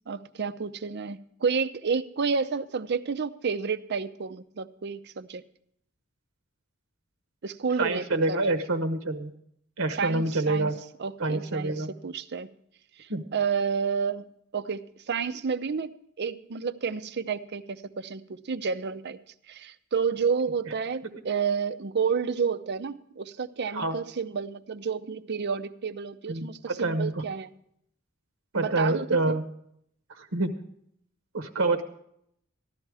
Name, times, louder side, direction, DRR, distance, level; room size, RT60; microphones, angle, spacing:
voice 1, 0.1-5.4 7.4-8.6 10.0-10.7 11.0-12.5 13.0-14.2 14.5-19.2 19.5-27.5 28.6-29.3, right 5 dB, 50° right, 13 dB, 0.6 m, -30 dB
voice 2, 7.8-9.3 9.8-10.7 11.2-11.9 13.1-13.2 23.7-24.0 26.3-27.2 28.5-29.4 30.2-30.5 31.3-31.8, right 2 dB, 70° right, 7 dB, 1.0 m, -27 dB
14.5 x 12.0 x 4.8 m, 0.71 s
head